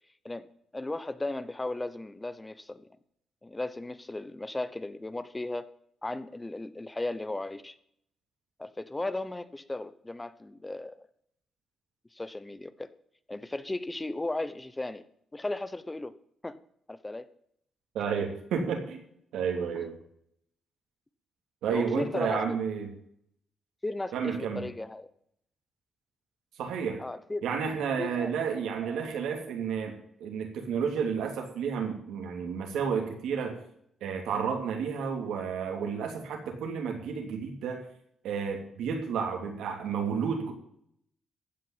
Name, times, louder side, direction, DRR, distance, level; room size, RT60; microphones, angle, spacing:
voice 1, 0.7-2.9 3.4-5.7 6.0-7.8 8.6-11.1 12.1-12.9 13.3-15.1 15.3-16.1 16.4-16.6 16.9-17.3 19.7-19.8 21.7-22.6 23.8-25.1 27.0-27.4 28.0-28.3, left 2 dB, 15° left, 14 dB, 0.9 m, -36 dB
voice 2, 17.9-19.0 19.3-20.0 21.6-22.9 24.1-24.7 26.6-27.0 27.4-29.9 30.2-33.6 34.0-37.8 38.2-40.5, right 6 dB, 90° right, 3 dB, 2.9 m, -31 dB
15.0 x 5.8 x 9.1 m, 0.69 s
cardioid pair, 85°, 0 cm